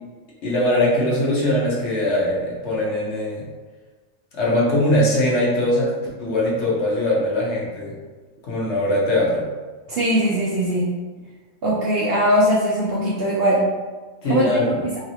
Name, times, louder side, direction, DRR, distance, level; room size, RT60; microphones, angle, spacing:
voice 1, 0.4-3.4 4.3-7.9 8.4-9.5 14.2-14.9, left 1 dB, 60° left, -5 dB, 1.0 m, -21 dB
voice 2, 9.9-10.9 11.6-13.7 14.3-15.0, equal, 60° right, -5 dB, 0.7 m, -20 dB
3.1 x 2.8 x 2.8 m, 1.3 s
omnidirectional pair, 1.4 m